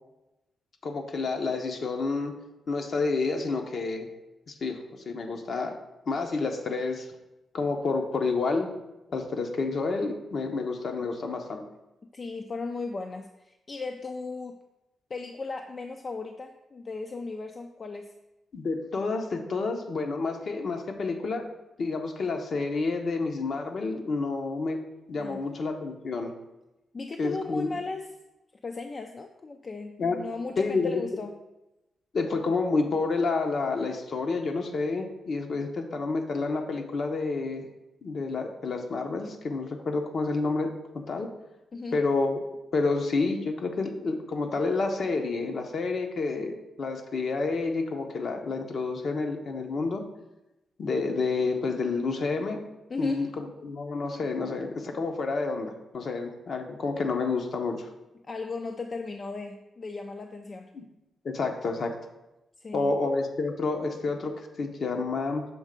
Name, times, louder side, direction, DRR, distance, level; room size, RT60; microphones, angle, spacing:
voice 1, 0.8-2.4 2.7-4.1 4.5-5.7 6.1-7.1 7.5-8.7 9.1-11.6 18.5-21.5 21.8-24.8 25.1-26.3 27.2-27.7 30.0-30.2 30.6-31.2 32.1-37.7 38.0-41.3 41.9-42.4 42.7-50.0 50.8-52.6 53.0-57.9 60.7-60.8 61.2-61.9 62.7-65.5, left 3 dB, 60° left, 4 dB, 0.8 m, -29 dB
voice 2, 12.1-14.6 15.1-18.1 25.2-25.4 26.9-28.1 28.6-31.3 41.7-42.0 52.9-53.2 58.3-60.7 62.6-62.9, left 3 dB, 40° left, 5 dB, 0.4 m, -36 dB
6.2 x 3.2 x 5.2 m, 0.97 s
cardioid pair, 80°, 0 cm